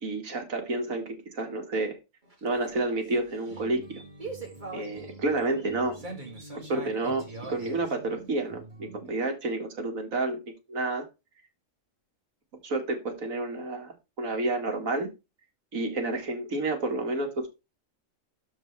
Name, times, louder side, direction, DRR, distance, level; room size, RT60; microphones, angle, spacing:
voice 1, 0.0-2.0 2.4-4.0 4.7-6.0 6.7-10.4 10.7-11.1 12.6-15.1 15.7-17.5, right 2 dB, 80° right, 2.3 m, -30 dB
sound 1, 2.2-9.1, right 2 dB, 35° right, 2.4 m, -43 dB
13.0 x 4.7 x 3.3 m
omnidirectional pair, 1.4 m